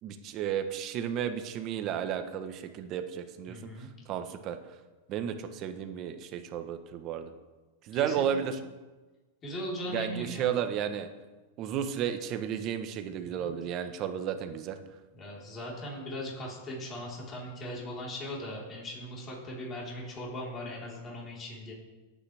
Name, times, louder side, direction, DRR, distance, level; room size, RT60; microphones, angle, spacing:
voice 1, 0.0-4.6 5.1-7.3 7.8-8.6 9.9-11.1 11.6-14.8, right 9 dB, 40° right, 8 dB, 1.1 m, -33 dB
voice 2, 3.5-3.9 7.9-8.3 9.4-10.5 13.2-13.5 15.1-21.7, equal, 25° left, -4 dB, 4.1 m, -39 dB
18.5 x 8.8 x 3.5 m, 1.2 s
supercardioid pair, 140°, 0 cm